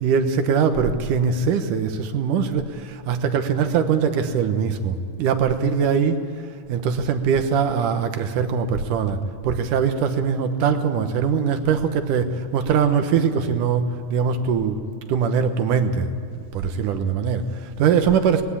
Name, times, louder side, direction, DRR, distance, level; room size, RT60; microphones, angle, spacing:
voice 1, 0.0-6.2 6.7-14.8 15.1-18.4, right 6 dB, 90° right, 8 dB, 2.8 m, -22 dB
20.0 x 16.0 x 8.5 m, 2.4 s
omnidirectional pair, 3.5 m